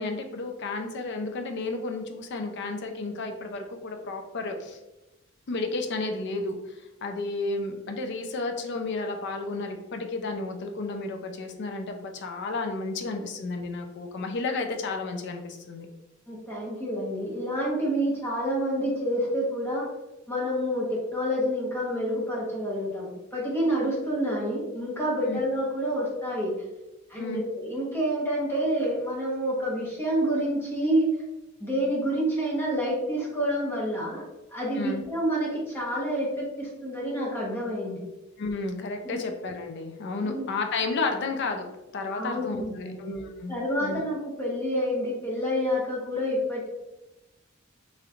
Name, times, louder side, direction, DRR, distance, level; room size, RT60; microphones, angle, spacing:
voice 1, 0.0-4.8 5.5-15.9 25.3-25.4 27.2-27.4 34.8-35.1 38.4-41.7 41.9-43.5 43.8-44.0, left 3 dB, 60° left, 5 dB, 0.4 m, -32 dB
voice 2, 16.3-19.8 20.3-26.5 27.1-31.1 31.6-34.2 34.5-38.0 39.0-39.2 40.2-40.4 42.1-42.9 43.5-46.7, equal, 10° left, -6 dB, 1.0 m, -28 dB
3.1 x 3.0 x 2.4 m, 1.0 s
head